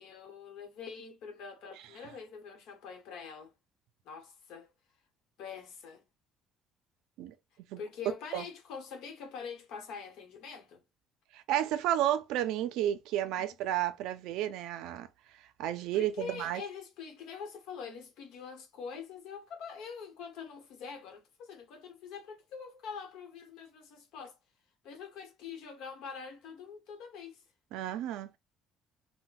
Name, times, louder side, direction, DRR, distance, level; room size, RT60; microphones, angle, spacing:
voice 1, 0.0-3.5 4.0-4.7 5.4-6.0 7.8-10.8 13.4-13.5 15.9-24.4 24.8-27.4, left 6 dB, 65° left, 0.9 m, -44 dB
voice 2, 11.5-15.1 15.6-16.6 27.7-28.4, right 12 dB, 75° right, 0.4 m, -31 dB
3.9 x 2.1 x 2.4 m
cardioid pair, 155°, 0 cm